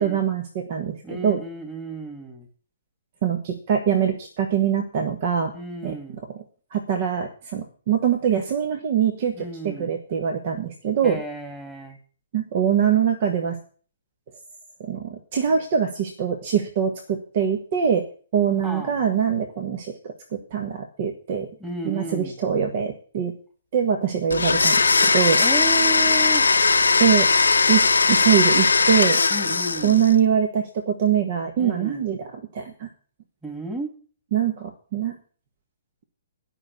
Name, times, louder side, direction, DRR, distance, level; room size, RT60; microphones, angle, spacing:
voice 1, 0.0-1.4 3.2-5.5 5.8-5.9 6.7-11.2 12.3-13.6 14.9-18.0 18.3-21.5 21.8-23.3 23.7-25.4 27.0-27.3 27.7-29.2 29.8-32.9 34.3-35.2, right 8 dB, 45° right, 4 dB, 1.6 m, -23 dB
voice 2, 1.0-2.5 5.5-6.3 9.3-9.9 11.0-12.0 18.5-19.0 21.6-22.3 25.4-26.4 29.3-30.0 31.6-32.1 33.4-33.9, right 3 dB, 5° right, 2 dB, 2.9 m, -33 dB
Domestic sounds home sounds, 24.3-30.1, left 4 dB, 70° left, 0.7 m, -19 dB
12.0 x 6.1 x 8.5 m, 0.42 s
figure-of-eight pair, 120°, 0 cm